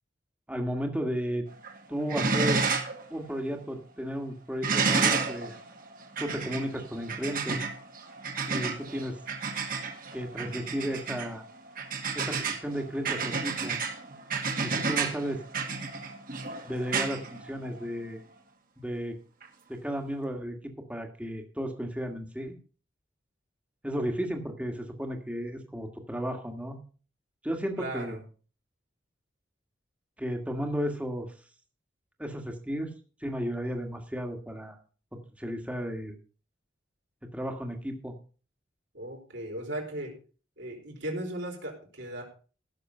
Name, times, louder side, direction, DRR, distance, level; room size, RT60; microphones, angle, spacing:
voice 1, 0.5-1.5 1.9-2.6 3.1-5.6 6.2-7.6 8.5-9.2 10.1-11.4 12.1-13.8 14.6-15.4 16.6-18.2 18.8-19.2 19.7-22.6 23.8-26.8 27.4-28.2 30.2-31.3 32.2-32.9 33.2-34.8 35.4-36.2 37.3-38.1, equal, 5° right, 4 dB, 1.6 m, -34 dB
sound 1, 1.5-1.8 2.1-3.0 3.3-3.4 4.6-18.0 19.4-19.5, right 4 dB, 45° right, 1.8 m, -31 dB
voice 2, 27.8-28.2 38.9-40.1 40.6-42.2, right 1 dB, 65° right, 1 dB, 4.5 m, -36 dB
15.5 x 6.9 x 5.4 m, 0.38 s
head